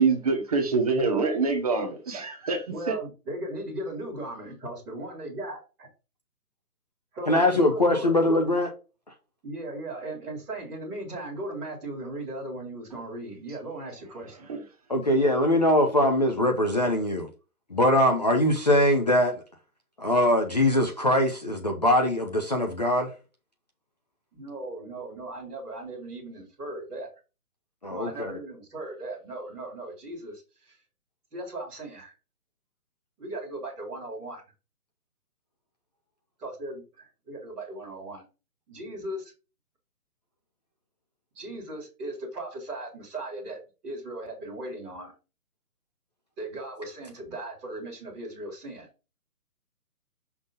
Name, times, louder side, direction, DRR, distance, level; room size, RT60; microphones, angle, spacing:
voice 1, 0.0-3.0, right 4 dB, 25° right, 1.0 m, -25 dB
voice 2, 2.7-5.6 7.1-8.4 9.4-14.5 24.3-27.1 27.9-30.8 31.3-32.1 33.2-34.4 36.4-38.2 38.7-39.3 41.3-45.1 46.4-48.9, right 1 dB, ahead, 0.8 m, -37 dB
voice 3, 7.3-8.7 14.9-17.3 17.7-19.4 20.0-23.1 27.8-28.3, left 1 dB, 30° left, 0.7 m, -22 dB
5.9 x 3.9 x 5.1 m
hypercardioid pair, 165°, 46 cm